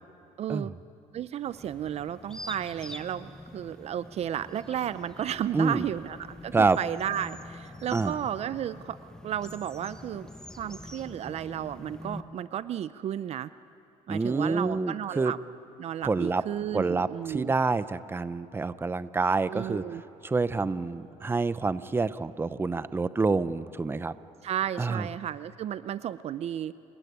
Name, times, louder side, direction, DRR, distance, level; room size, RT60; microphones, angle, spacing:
voice 1, 0.4-0.7 1.1-10.3 10.6-13.5 14.1-15.4 15.8-17.5 19.5-20.0 24.4-26.7, right 10 dB, 50° right, 15 dB, 0.5 m, -33 dB
sound 1, 1.4-12.2, left 1 dB, 5° left, 1.2 m, -45 dB
voice 2, 5.5-5.9 6.5-6.8 7.9-8.2 14.1-15.3 16.0-16.4 16.7-19.8 20.2-24.2 24.8-25.1, right 4 dB, 15° right, 15 dB, 0.7 m, -27 dB
29.5 x 19.0 x 9.5 m, 2.9 s
cardioid pair, 115°, 14 cm